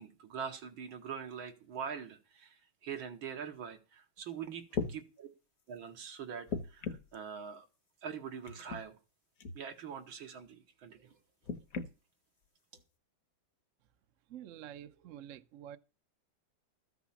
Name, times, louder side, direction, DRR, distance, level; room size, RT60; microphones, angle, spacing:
voice 1, 0.0-4.6 4.9-5.3 5.7-7.7 8.0-9.0 9.5-11.2, right 7 dB, 85° right, 2.3 m, -43 dB
sound 1, 4.2-4.3 4.7-5.0 6.5-7.2 8.4-8.8 9.4-9.6 11.4-11.9 12.8-12.9, left 4 dB, 55° left, 1.2 m, -37 dB
voice 2, 14.3-15.8, right 10 dB, 60° right, 0.8 m, -48 dB
13.5 x 6.0 x 7.1 m
omnidirectional pair, 2.2 m